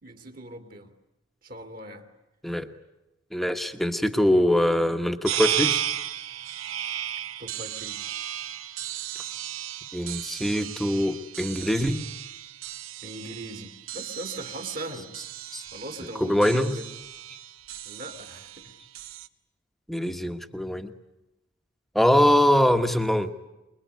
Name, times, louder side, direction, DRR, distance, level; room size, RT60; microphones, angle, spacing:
voice 1, 0.0-0.9 1.4-2.1 7.4-8.1 13.0-15.1 15.7-16.9 17.9-18.7, right 1 dB, 45° right, 6 dB, 2.3 m, -39 dB
voice 2, 3.3-5.8 9.9-12.1 15.5-15.6 16.2-16.7 19.9-20.9 21.9-23.3, left 1 dB, ahead, 8 dB, 1.2 m, -23 dB
sound 1, 5.2-19.3, right 11 dB, 90° right, 1.0 m, -34 dB
25.0 x 22.5 x 9.4 m, 0.98 s
head